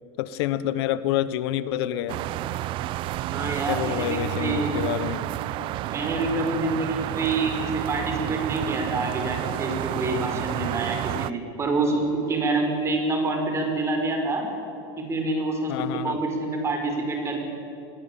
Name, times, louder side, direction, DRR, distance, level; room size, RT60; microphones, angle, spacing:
voice 1, 0.2-2.2 3.7-5.2 15.7-16.2, left 12 dB, 70° left, 15 dB, 1.1 m, -27 dB
sound 1, 2.1-11.3, right 14 dB, 40° right, 0.7 m, -30 dB
voice 2, 3.3-4.8 5.9-14.4 15.0-17.4, right 2 dB, 20° right, 3 dB, 5.4 m, -27 dB
28.5 x 21.5 x 8.8 m, 2.8 s
supercardioid pair, 155°, 14 cm